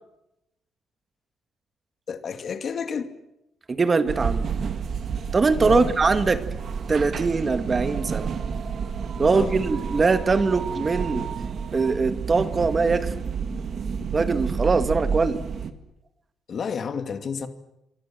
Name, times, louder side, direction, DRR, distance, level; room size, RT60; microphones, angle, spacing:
voice 1, 2.1-3.1 5.7-5.9 9.3-9.6 16.5-17.5, left 6 dB, 50° left, 2.4 m, -30 dB
voice 2, 3.7-4.5 5.3-6.4 6.9-8.3 9.2-11.3 11.7-13.1 14.1-15.4, right 4 dB, 30° right, 1.6 m, -22 dB
sound 1, 4.1-15.7, right 6 dB, 55° right, 2.1 m, -30 dB
27.0 x 24.0 x 7.6 m
cardioid pair, 100°, 0 cm